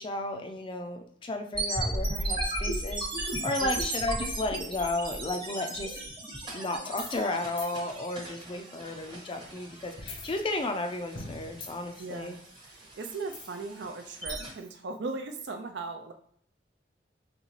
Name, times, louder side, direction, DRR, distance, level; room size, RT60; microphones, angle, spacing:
voice 1, 0.0-6.0 6.5-12.4, left 2 dB, 30° left, 5 dB, 0.4 m, -33 dB
sound 1, 1.5-14.5, right 1 dB, 25° right, 1.0 m, -36 dB
sound 2, 6.9-7.3 7.6-7.7 10.0-10.8 11.1-12.0 13.3-13.7, left 3 dB, 80° left, 0.9 m, -42 dB
voice 2, 12.0-12.4 13.0-16.1, right 3 dB, 70° right, 5 dB, 0.5 m, -38 dB
3.8 x 3.2 x 3.1 m, 0.63 s
head